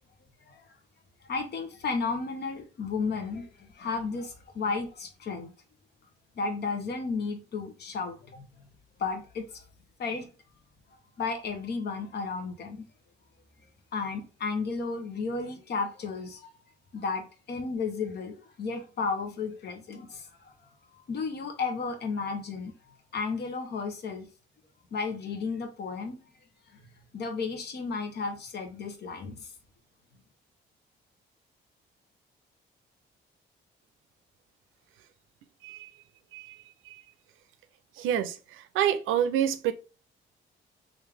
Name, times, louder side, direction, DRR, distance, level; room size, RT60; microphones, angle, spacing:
voice 1, 1.3-5.5 6.4-8.5 9.0-9.6 10.0-10.3 11.2-12.8 13.9-16.5 16.9-20.6 20.9-22.7 23.1-24.3 24.9-26.2 27.1-29.5, left 4 dB, 55° left, 1.0 m, -33 dB
voice 2, 38.0-38.4 38.7-39.7, right 10 dB, 85° right, 0.5 m, -27 dB
3.2 x 2.6 x 3.3 m
cardioid pair, 90°, 20 cm